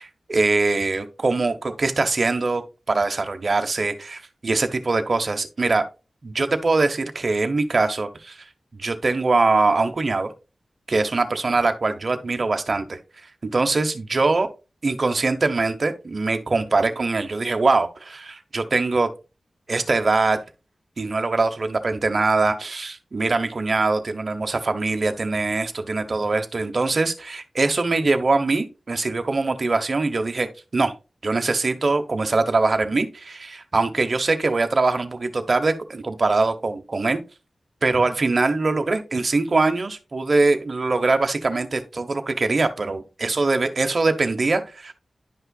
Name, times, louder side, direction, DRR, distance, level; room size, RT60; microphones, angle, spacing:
voice 1, 0.0-2.6 2.9-5.8 6.2-8.4 8.7-10.3 10.9-13.0 13.4-14.5 14.8-19.1 19.7-20.4 21.0-30.5 30.7-30.9 31.2-37.2 37.8-44.9, right 3 dB, 50° right, 1.0 m, -22 dB
11.0 x 5.5 x 2.3 m
wide cardioid pair, 85°, 0 cm